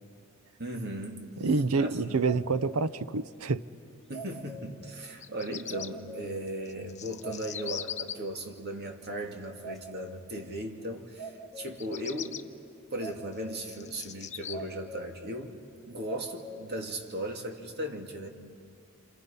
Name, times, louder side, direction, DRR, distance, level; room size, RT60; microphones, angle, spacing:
voice 1, 0.6-1.3 1.8-2.4 4.1-12.4 12.9-18.3, right 1 dB, 50° right, 3 dB, 2.3 m, -37 dB
voice 2, 1.4-3.6, right 4 dB, 75° right, 15 dB, 0.7 m, -27 dB
sound 1, 2.3-3.0 3.4-3.5 4.1-4.9 5.4-5.5 5.7-6.5 6.9-7.0 7.2-8.1 8.4-8.5 9.2-9.3 9.6-10.4 11.2-12.0 13.0-13.7 14.5-15.2 15.6-15.7 16.1-16.8 17.2-17.3, equal, ahead, 2.4 m, -44 dB
Bird vocalization bird call bird song, 5.0-5.9 6.6-8.1 11.7-12.4 13.1-14.5, left 9 dB, 35° left, 0.7 m, -39 dB
29.5 x 27.0 x 5.7 m, 2.3 s
head